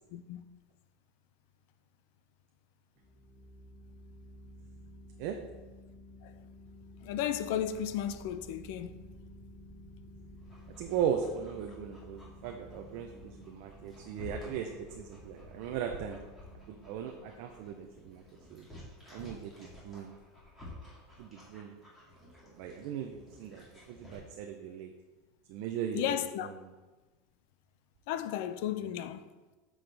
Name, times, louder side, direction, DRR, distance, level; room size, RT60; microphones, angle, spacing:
voice 1, 0.1-0.4 6.2-6.3 7.0-8.9 25.9-26.5 28.1-29.3, left 10 dB, 55° left, 0.5 m, -34 dB
sound 1, 3.0-19.2, left 1 dB, 5° right, 1.5 m, -53 dB
Dog, 10.4-24.2, left 1 dB, 10° left, 2.2 m, -53 dB
voice 2, 10.8-14.7 15.0-16.2 16.7-18.2 18.5-18.7 19.1-20.1 21.2-21.7 22.5-24.9 25.5-26.2, right 8 dB, 50° right, 0.6 m, -37 dB
9.1 x 6.2 x 3.4 m
supercardioid pair, 170°, 0 cm